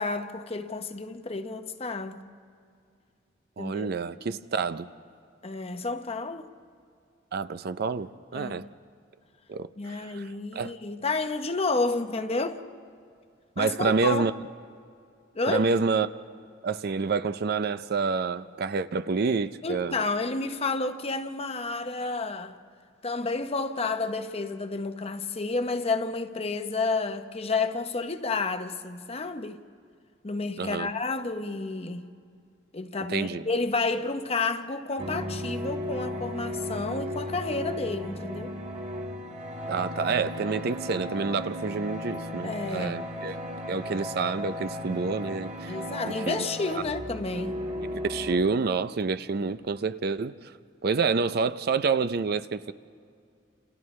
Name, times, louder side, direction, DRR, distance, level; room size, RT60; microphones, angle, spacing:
voice 1, 0.0-2.2 3.6-3.9 5.4-6.5 8.3-8.6 9.8-12.6 13.6-14.3 15.3-15.6 19.6-22.6 23.0-29.6 30.2-32.1 32.7-38.5 42.4-43.0 45.7-47.6, left 3 dB, 30° left, 0.8 m, -30 dB
voice 2, 3.6-4.9 7.3-8.7 9.5-10.3 10.5-10.8 13.6-14.3 15.5-16.1 16.6-20.0 30.6-30.9 33.1-33.4 39.7-43.4 43.7-45.8 46.0-46.5 47.9-50.5 50.8-52.7, right 4 dB, 55° right, 0.5 m, -28 dB
sound 1, 35.0-48.4, left 1 dB, 35° right, 1.9 m, -35 dB
29.5 x 28.5 x 3.2 m
head